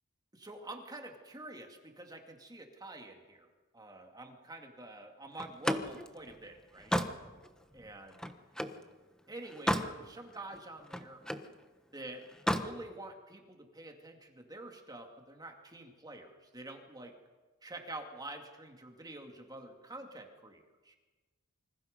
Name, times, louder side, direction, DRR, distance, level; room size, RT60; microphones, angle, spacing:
voice 1, 0.3-3.5 3.7-7.0 7.7-8.1 9.3-11.2 11.9-12.3 12.6-17.1 17.6-21.0, right 2 dB, 20° right, 3 dB, 2.5 m, -47 dB
Slam, 5.4-8.8 9.3-10.0 10.3-11.5 12.3-12.7, equal, 5° left, 1.2 m, -34 dB
27.5 x 25.5 x 5.4 m, 1.3 s
head